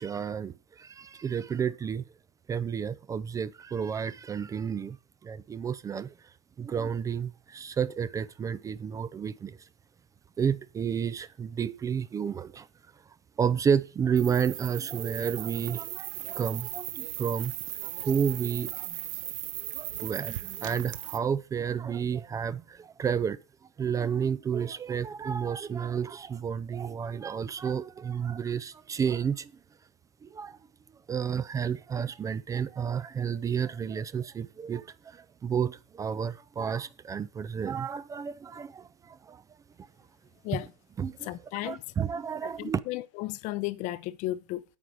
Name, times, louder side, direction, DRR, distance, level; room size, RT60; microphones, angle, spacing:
voice 1, 0.0-2.0 2.5-5.0 5.2-6.1 6.6-9.6 10.4-12.7 13.4-17.5 17.8-19.0 19.7-23.4 23.8-29.5 30.2-30.6 31.1-39.4 41.0-41.3 41.6-42.8, right 7 dB, 20° right, 0.5 m, -31 dB
sound 1, 14.2-21.2, right 15 dB, 55° right, 0.9 m, -37 dB
voice 2, 41.2-41.8 42.6-44.6, left 16 dB, 45° left, 0.7 m, -34 dB
9.0 x 8.8 x 4.7 m
hypercardioid pair, 100°, 18 cm